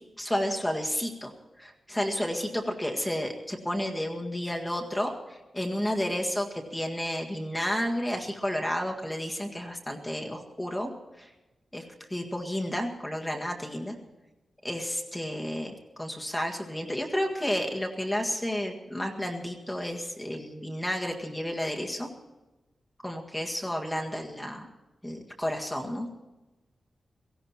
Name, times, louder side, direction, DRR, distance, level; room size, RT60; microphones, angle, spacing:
voice 1, 0.2-1.3 1.6-10.9 11.2-11.3 11.7-11.8 12.1-13.9 14.6-22.1 23.0-24.7 25.0-26.1, equal, 5° left, 1 dB, 1.9 m, -31 dB
17.5 x 16.0 x 4.4 m, 1.1 s
wide cardioid pair, 165°, 0 cm